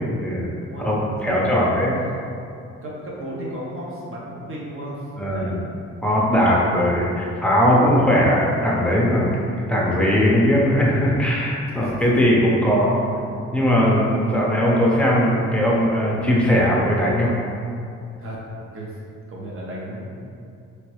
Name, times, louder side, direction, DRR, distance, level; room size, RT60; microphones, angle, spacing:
voice 1, 0.2-0.5 0.8-2.0 5.2-5.5 6.0-9.3 9.6-13.0 13.5-17.3, equal, 5° left, -5 dB, 0.7 m, -19 dB
voice 2, 1.2-1.8 2.7-5.7 11.7-11.9 18.2-18.4 18.7-18.9 19.3-20.4, right 1 dB, 45° right, -4 dB, 0.9 m, -34 dB
3.1 x 2.9 x 3.0 m, 2.5 s
cardioid pair, 90°, 30 cm